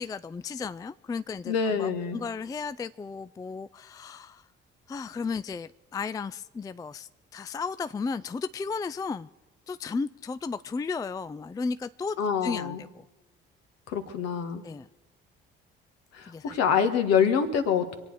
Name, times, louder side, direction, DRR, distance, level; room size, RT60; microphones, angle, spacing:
voice 1, 0.0-4.4 4.9-9.3 9.7-12.2 12.4-13.0 14.6-14.9 16.3-16.6, left 4 dB, 15° left, 0.4 m, -34 dB
voice 2, 1.4-2.2 12.2-12.8 13.9-14.6 16.1-18.0, left 7 dB, 60° left, 1.6 m, -26 dB
25.5 x 8.9 x 4.9 m
figure-of-eight pair, 45°, 29 cm